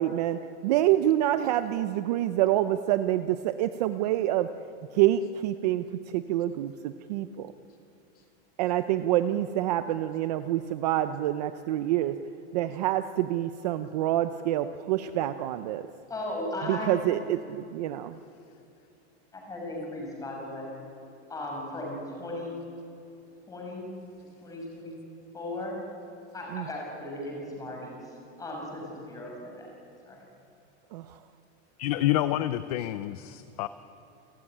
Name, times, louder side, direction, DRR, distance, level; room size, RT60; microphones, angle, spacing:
voice 1, 0.0-4.5 4.9-5.8 6.1-7.5 8.6-12.2 12.5-15.9 16.6-18.2 26.5-26.7 30.9-31.1, right 13 dB, 35° right, 10 dB, 0.6 m, -27 dB
voice 2, 16.1-17.0 19.3-20.7 21.3-22.6 23.5-23.9 24.4-25.0 25.3-25.8 26.3-28.0 28.4-29.7 30.0-30.2, left 1 dB, 10° left, 0 dB, 5.9 m, -36 dB
voice 3, 31.8-33.7, left 13 dB, 35° left, 13 dB, 0.5 m, -28 dB
29.5 x 15.0 x 10.0 m, 2.8 s
supercardioid pair, 175°, 35 cm